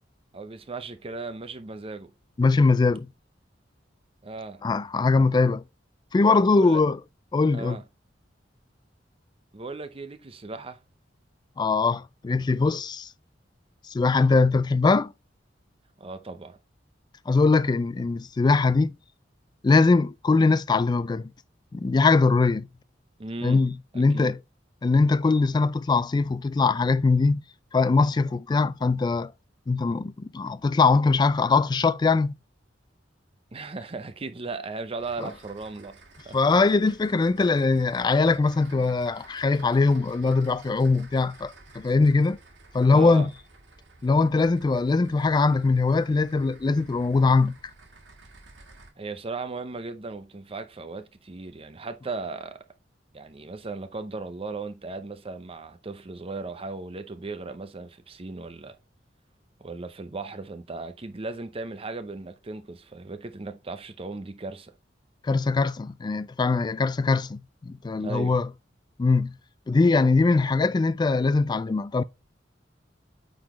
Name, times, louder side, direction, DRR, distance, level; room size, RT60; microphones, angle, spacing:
voice 1, 0.3-2.1 4.2-4.6 6.5-6.8 7.5-7.8 9.5-10.8 16.0-16.6 23.2-23.6 24.1-24.4 33.5-36.0 36.2-36.4 42.9-43.3 49.0-52.6 53.1-58.8 59.6-64.7 68.0-68.4, right 3 dB, 30° right, 0.7 m, -36 dB
voice 2, 2.4-3.1 4.6-5.6 6.1-7.0 7.3-7.8 11.6-13.1 13.9-15.1 17.3-18.9 19.6-21.3 21.7-22.7 23.4-24.4 24.8-27.4 27.7-29.3 29.7-32.3 36.3-42.4 42.7-43.3 44.0-47.5 65.3-68.5 69.0-69.3 69.7-72.0, left 3 dB, 25° left, 0.3 m, -21 dB
sound 1, 35.0-48.9, right 3 dB, 85° right, 1.7 m, -52 dB
8.5 x 4.0 x 3.0 m
head